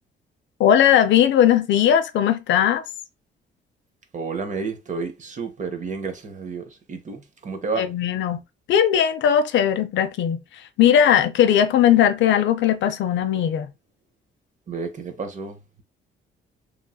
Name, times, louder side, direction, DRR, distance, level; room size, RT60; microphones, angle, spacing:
voice 1, 0.6-2.8 7.8-8.4 8.7-10.4 10.8-13.7, left 9 dB, 70° left, 0.4 m, -18 dB
voice 2, 4.1-7.9 14.7-15.8, right 4 dB, 40° right, 0.7 m, -31 dB
3.0 x 2.6 x 2.2 m
cardioid pair, 90°, 20 cm